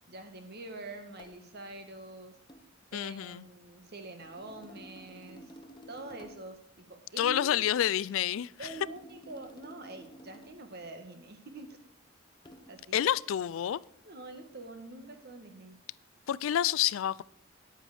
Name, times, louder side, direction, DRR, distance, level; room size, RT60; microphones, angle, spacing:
voice 1, 0.1-2.3 2.9-5.5 5.9-7.6 8.6-11.8 12.7-13.1 14.0-15.8, right 2 dB, 55° right, 1.4 m, -46 dB
sound 1, 1.2-1.5 2.5-2.7 4.2-6.5 8.6-10.7 12.5-12.8, equal, 25° left, 1.0 m, -52 dB
voice 2, 2.9-3.5 7.2-8.7 12.9-13.8 16.3-17.2, left 10 dB, 85° left, 0.3 m, -29 dB
9.5 x 8.9 x 4.9 m
head